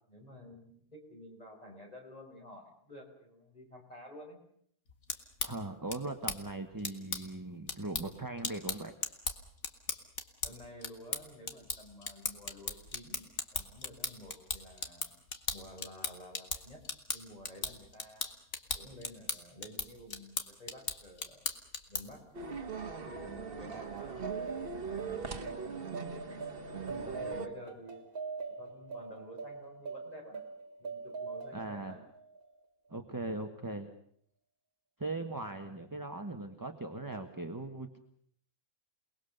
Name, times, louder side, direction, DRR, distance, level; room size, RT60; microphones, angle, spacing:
voice 1, 0.1-4.4 10.4-15.1 15.5-16.8 17.1-18.3 18.7-21.5 21.9-22.2 23.0-24.3 24.9-26.5 26.8-28.0 28.6-30.4 30.8-32.0 32.9-33.1 35.7-36.0, left 1 dB, 25° left, 1 dB, 5.5 m, -51 dB
sound 1, 4.9-22.3, left 4 dB, 55° left, 2.1 m, -39 dB
voice 2, 5.4-8.9 31.5-32.0 32.9-33.9 35.0-38.0, right 2 dB, 15° right, 5 dB, 1.4 m, -39 dB
sound 2, 22.3-27.5, right 5 dB, 40° right, 1.6 m, -40 dB
sound 3, 23.6-32.6, right 4 dB, 85° right, 2.0 m, -43 dB
28.5 x 20.0 x 6.7 m, 0.65 s
omnidirectional pair, 1.5 m